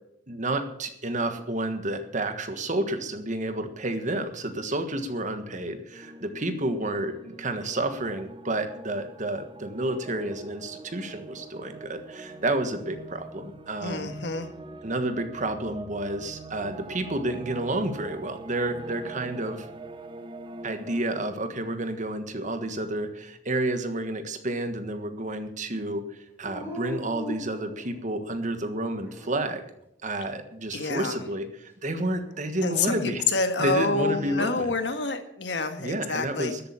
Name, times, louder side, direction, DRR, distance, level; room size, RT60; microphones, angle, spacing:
voice 1, 0.3-14.1 14.8-19.7 20.6-29.6 30.0-33.2 33.6-34.7 35.8-36.6, right 1 dB, 45° right, 8 dB, 1.5 m, -30 dB
sound 1, 5.9-21.0, right 2 dB, 30° right, 0.8 m, -43 dB
voice 2, 13.8-14.5 30.7-31.2 32.6-36.5, left 3 dB, 70° left, 7 dB, 1.7 m, -28 dB
Dog, 26.4-28.3 28.9-29.7 32.0-32.9, equal, 10° right, 4.0 m, -40 dB
13.0 x 8.6 x 8.7 m, 0.79 s
head